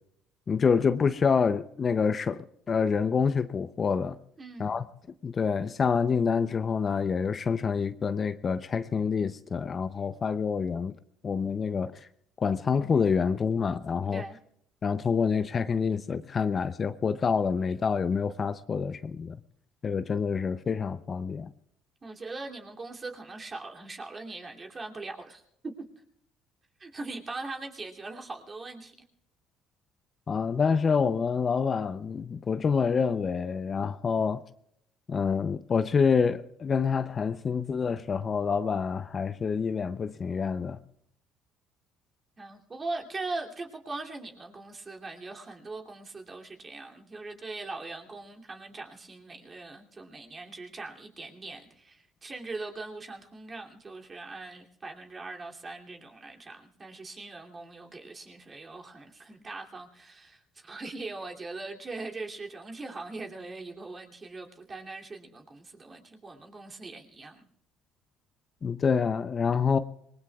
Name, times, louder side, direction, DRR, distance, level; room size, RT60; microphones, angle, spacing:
voice 1, 0.5-4.2 4.6-4.9 5.2-11.0 11.2-12.1 12.4-14.2 14.8-19.4 19.8-21.5 30.3-34.4 35.1-40.8 68.6-69.8, left 6 dB, 35° left, 0.6 m, -27 dB
voice 2, 4.4-4.9 14.1-14.4 22.0-25.8 26.8-28.9 42.4-67.5, right 3 dB, 30° right, 2.7 m, -41 dB
26.5 x 20.5 x 2.4 m
supercardioid pair, 90°, 0 cm